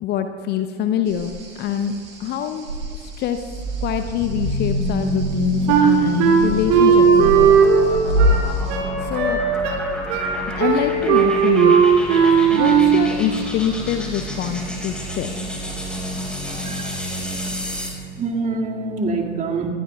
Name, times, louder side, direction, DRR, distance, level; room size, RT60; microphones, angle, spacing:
voice 1, 0.0-1.9 2.2-2.7 3.0-3.4 3.8-7.5 9.0-9.4 10.6-11.8 12.3-15.3, left 9 dB, 30° left, 8 dB, 0.7 m, -25 dB
sound 1, 1.1-8.8, equal, 70° right, 4.7 m, -27 dB
sound 2, 3.3-18.0, equal, 5° left, 4.9 m, -29 dB
Wind instrument woodwind instrument, 5.7-13.1, right 7 dB, 45° right, 2.9 m, -16 dB
voice 2, 16.5-17.1 18.2-19.7, right 3 dB, 20° right, 1 dB, 2.1 m, -26 dB
26.5 x 21.0 x 2.3 m, 2.1 s
figure-of-eight pair, 90°, 36 cm